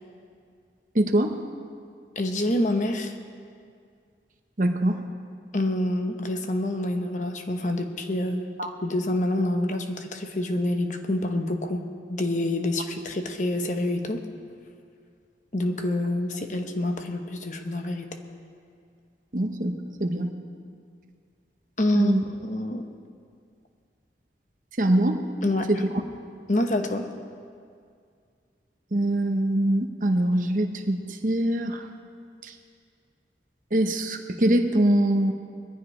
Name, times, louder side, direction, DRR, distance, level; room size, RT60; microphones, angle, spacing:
voice 1, 0.9-1.4 4.6-5.0 8.6-8.7 19.3-19.7 20.0-20.3 21.9-22.2 24.8-25.2 25.7-25.9 28.9-31.9 32.4-32.5 33.7-35.3, right 1 dB, 50° right, 5 dB, 1.0 m, -23 dB
voice 2, 2.2-3.1 5.5-8.5 8.8-14.2 15.5-18.2 21.8-22.1 22.4-22.8 25.4-25.7 26.5-27.1, left 1 dB, 45° left, 5 dB, 1.0 m, -27 dB
21.5 x 14.5 x 3.3 m, 2.3 s
head